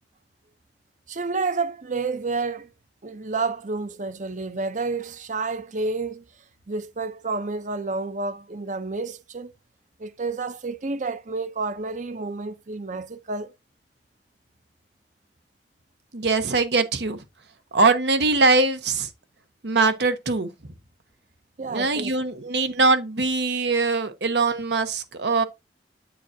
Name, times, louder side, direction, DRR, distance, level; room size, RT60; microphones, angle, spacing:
voice 1, 1.1-2.7 3.0-6.2 6.7-9.5 10.0-13.5 21.6-22.1, right 3 dB, 45° right, 0.7 m, -30 dB
voice 2, 16.1-17.2 17.7-19.1 19.6-20.5 21.7-25.4, right 3 dB, 70° right, 1.0 m, -22 dB
8.5 x 6.9 x 2.7 m
head